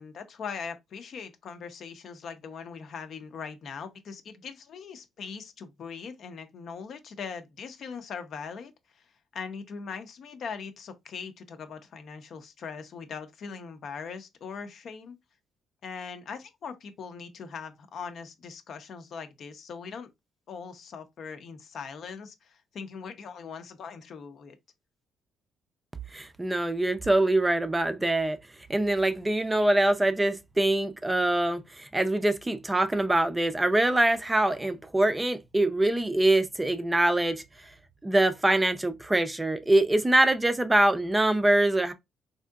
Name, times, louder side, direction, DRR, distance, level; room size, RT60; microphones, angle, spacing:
voice 1, 0.0-15.2 15.8-20.1 20.5-24.6, left 6 dB, 65° left, 0.6 m, -41 dB
voice 2, 26.1-28.4 28.7-37.4 38.0-41.9, right 1 dB, 15° right, 0.4 m, -24 dB
3.5 x 2.6 x 2.3 m
cardioid pair, 90°, 0 cm